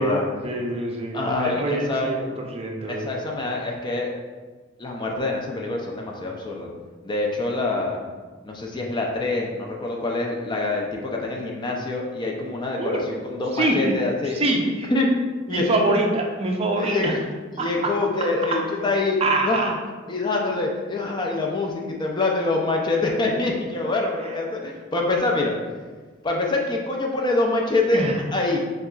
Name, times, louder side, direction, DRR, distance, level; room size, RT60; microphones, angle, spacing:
voice 1, 0.0-3.1 8.7-8.8 12.8-13.0 13.5-13.9 14.2-14.9 15.5-17.2 17.6-17.9 18.2-18.6 19.2-19.8 27.9-28.2, right 2 dB, 30° right, 0 dB, 0.5 m, -25 dB
voice 2, 1.1-2.1 2.9-4.1 4.8-6.7 7.0-8.0 8.4-14.4 14.9-15.1 15.5-15.7 16.8-17.2 17.5-19.2 19.4-19.8 20.1-25.5 26.2-28.0 28.3-28.6, left 2 dB, 25° left, 0 dB, 0.4 m, -25 dB
6.5 x 2.3 x 2.3 m, 1.4 s
head